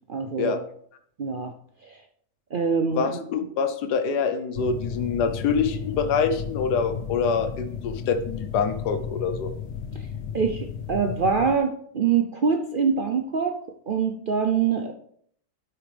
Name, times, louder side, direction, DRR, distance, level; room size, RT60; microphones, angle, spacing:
voice 1, 0.1-0.6 1.2-1.5 1.8-2.0 2.5-3.2 10.3-13.6 13.9-14.9, right 6 dB, 65° right, 4 dB, 0.5 m, -24 dB
voice 2, 2.9-9.5, left 6 dB, 85° left, 8 dB, 1.4 m, -25 dB
sound 1, 4.5-11.6, left 6 dB, 60° left, 0.7 m, -33 dB
9.4 x 8.1 x 3.3 m, 0.64 s
omnidirectional pair, 1.7 m